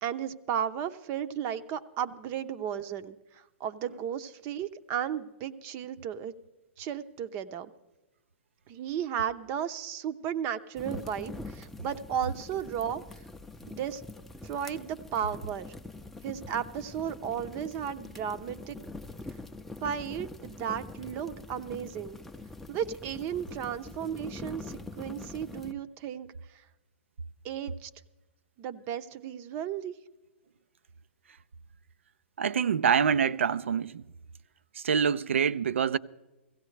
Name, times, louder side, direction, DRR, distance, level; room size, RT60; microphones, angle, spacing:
voice 1, 0.0-3.2 3.6-6.3 6.8-7.7 8.7-13.0 13.7-14.0 14.4-15.7 16.2-18.8 19.8-22.2 22.7-26.3 27.4-27.9 28.6-29.9, right 9 dB, 35° right, 0.7 m, -34 dB
sound 1, 10.8-25.7, left 2 dB, 5° left, 0.5 m, -44 dB
voice 2, 32.4-34.0 34.8-36.0, right 7 dB, 75° right, 0.4 m, -26 dB
16.0 x 16.0 x 3.2 m
hypercardioid pair, 125°, 7 cm